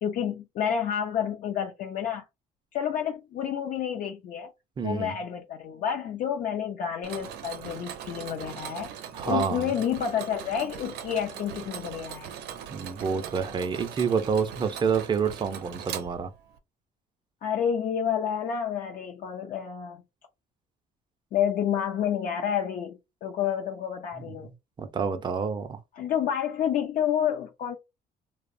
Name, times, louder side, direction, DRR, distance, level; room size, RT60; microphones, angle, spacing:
voice 1, 0.0-2.2 2.7-4.5 4.8-8.9 9.3-12.3 17.4-20.0 21.3-24.5 25.9-27.8, left 9 dB, 55° left, 0.5 m, -29 dB
voice 2, 4.8-5.2 9.1-9.7 12.7-16.3 24.2-24.3 24.8-25.8, right 6 dB, 30° right, 0.4 m, -28 dB
Mechanisms, 7.0-16.6, right 9 dB, 80° right, 0.5 m, -40 dB
2.7 x 2.0 x 2.5 m
cardioid pair, 110°, 17 cm